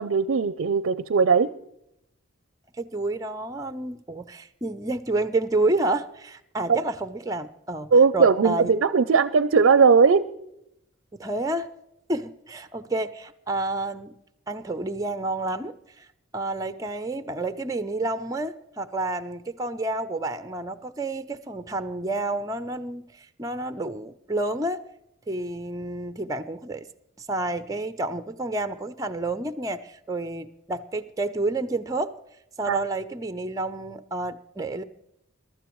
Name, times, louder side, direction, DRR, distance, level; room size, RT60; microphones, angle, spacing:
voice 1, 0.0-1.5 7.9-10.2 32.7-32.8, right 5 dB, 65° right, 15 dB, 0.5 m, -19 dB
voice 2, 2.8-8.7 11.1-11.7 12.1-14.1 14.5-16.1 16.3-24.8 25.3-26.9 27.2-32.2 32.6-34.8, right 2 dB, 15° right, 10 dB, 0.5 m, -29 dB
22.0 x 12.5 x 3.1 m, 0.81 s
head